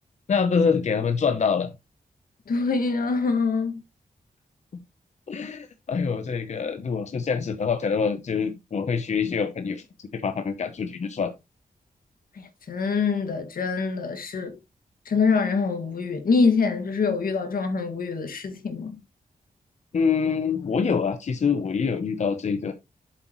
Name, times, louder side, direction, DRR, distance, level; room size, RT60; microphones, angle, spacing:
voice 1, 0.3-1.7 5.3-11.3 19.9-22.7, left 5 dB, 50° left, 0.8 m, -25 dB
voice 2, 2.5-3.8 12.7-14.5 15.1-18.9, left 4 dB, 80° left, 2.0 m, -24 dB
8.0 x 7.5 x 3.1 m
wide cardioid pair, 150°, 15 cm